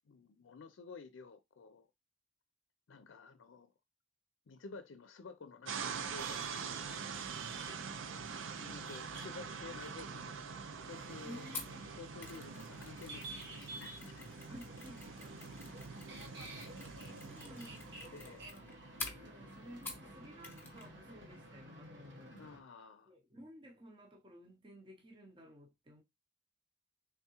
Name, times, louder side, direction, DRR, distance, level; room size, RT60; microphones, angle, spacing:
voice 1, 0.1-1.9 2.9-3.7 4.5-7.4 8.5-10.4 10.9-11.5 12.0-14.5 18.1-18.5 22.3-23.1, left 4 dB, 85° left, 0.5 m, -52 dB
sound 1, 5.7-18.5, right 6 dB, 90° right, 0.5 m, -45 dB
sound 2, 6.2-22.6, right 2 dB, 70° right, 1.1 m, -52 dB
voice 2, 11.2-11.8 14.5-15.3 15.6-15.7 17.2-18.7 19.2-22.4 23.1-26.0, equal, 25° right, 0.7 m, -54 dB
Mechanisms, 11.5-20.1 20.4-20.9 21.1-21.3, left 3 dB, 10° left, 0.7 m, -50 dB
3.5 x 3.5 x 2.9 m
head